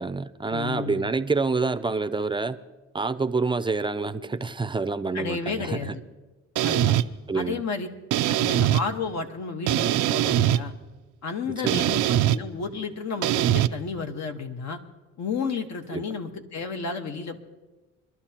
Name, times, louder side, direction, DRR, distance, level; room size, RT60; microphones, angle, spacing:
voice 1, 0.0-2.6 2.9-5.8 7.3-7.6 11.6-12.0 15.9-16.0, right 3 dB, 15° right, 12 dB, 0.5 m, -27 dB
voice 2, 0.5-1.1 5.1-6.0 6.6-6.9 7.3-7.9 8.3-10.7 11.2-14.8 15.2-17.4, left 5 dB, 65° left, 5 dB, 1.4 m, -32 dB
sound 1, 6.6-7.0 8.1-8.8 9.7-10.6 11.7-12.4 13.2-13.7, right 13 dB, 90° right, 0.5 m, -22 dB
24.5 x 12.0 x 2.9 m, 1.2 s
cardioid pair, 90°, 30 cm